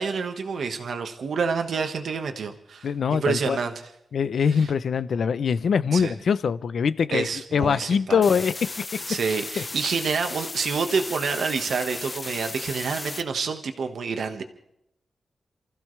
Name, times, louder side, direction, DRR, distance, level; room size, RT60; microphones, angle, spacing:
voice 1, 0.0-3.7 4.6-4.7 5.9-6.1 7.1-8.2 9.1-14.4, right 5 dB, 75° right, 1.5 m, -28 dB
voice 2, 2.8-3.6 4.1-9.0 9.6-9.9, left 6 dB, 70° left, 0.7 m, -23 dB
sound 1, 8.2-13.2, left 2 dB, 25° left, 1.0 m, -35 dB
29.0 x 15.0 x 3.3 m
wide cardioid pair, 120°, 0 cm